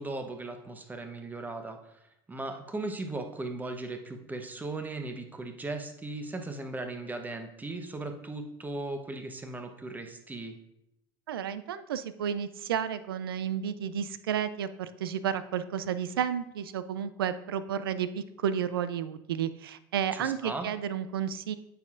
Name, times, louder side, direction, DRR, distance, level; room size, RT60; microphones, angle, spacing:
voice 1, 0.0-1.8 2.3-10.6 20.1-20.7, right 2 dB, 15° right, 6 dB, 0.9 m, -37 dB
voice 2, 11.3-21.6, right 8 dB, 85° right, 13 dB, 0.4 m, -32 dB
8.9 x 5.5 x 2.5 m, 0.83 s
hypercardioid pair, 85°, 12 cm